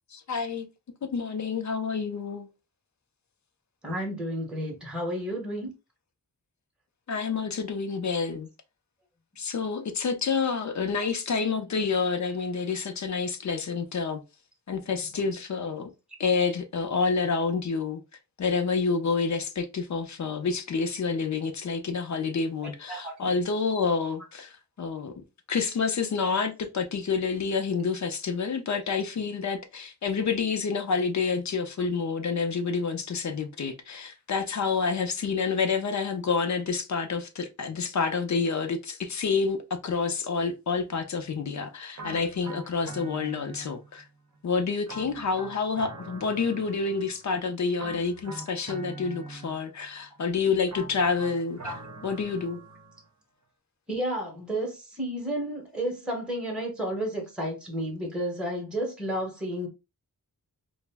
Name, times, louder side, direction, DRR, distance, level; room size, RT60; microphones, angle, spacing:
voice 1, 0.1-0.7 1.0-2.5 7.1-8.5 9.4-14.2 14.7-15.9 16.2-18.0 18.4-24.5 24.8-25.1 25.5-44.0 44.4-51.7 52.0-52.6, left 5 dB, 55° left, 0.5 m, -28 dB
voice 2, 3.8-5.7 15.1-15.2 22.6-23.2 51.6-51.7 53.9-59.7, right 1 dB, 5° right, 0.8 m, -32 dB
sound 1, 41.9-44.0 44.9-47.2 47.8-49.9 50.7-53.1, right 2 dB, 50° right, 0.7 m, -43 dB
2.4 x 2.0 x 3.3 m
wide cardioid pair, 115°, 35 cm